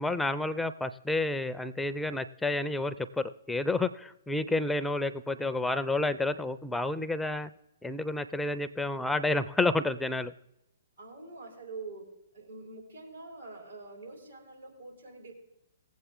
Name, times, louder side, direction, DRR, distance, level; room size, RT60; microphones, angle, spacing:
voice 1, 0.0-7.5 7.8-10.3, left 2 dB, 5° left, 12 dB, 0.4 m, -30 dB
voice 2, 11.0-12.1 12.3-15.3, right 3 dB, 85° right, 1 dB, 4.0 m, -45 dB
18.0 x 8.0 x 3.6 m, 0.86 s
figure-of-eight pair, 120°, 0 cm